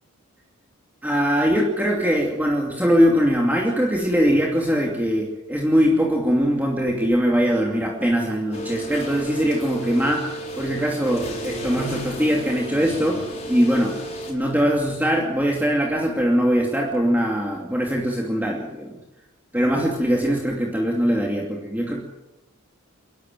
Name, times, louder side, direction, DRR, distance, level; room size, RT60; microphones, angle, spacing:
voice 1, 1.0-10.3 10.5-14.0 14.3-19.0 19.5-22.0, equal, 10° right, -1 dB, 2.6 m, -21 dB
sound 1, 8.5-14.3, right 1 dB, 30° left, 6.1 m, -32 dB
29.5 x 12.0 x 9.2 m, 0.97 s
head